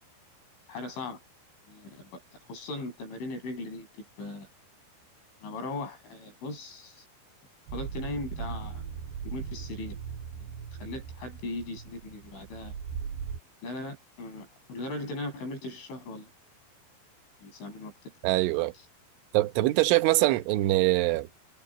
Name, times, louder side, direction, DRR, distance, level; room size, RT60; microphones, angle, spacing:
voice 1, 0.7-1.2 1.7-2.2 2.5-3.9 4.2-4.5 5.4-7.1 7.7-8.8 9.3-10.0 10.8-12.8 13.6-16.3 17.4-17.9, left 2 dB, 80° left, 9.9 m, -38 dB
sound 1, 7.7-13.4, right 7 dB, 65° right, 6.2 m, -39 dB
voice 2, 18.2-18.7 19.3-21.3, right 18 dB, 85° right, 3.6 m, -23 dB
omnidirectional pair, 5.4 m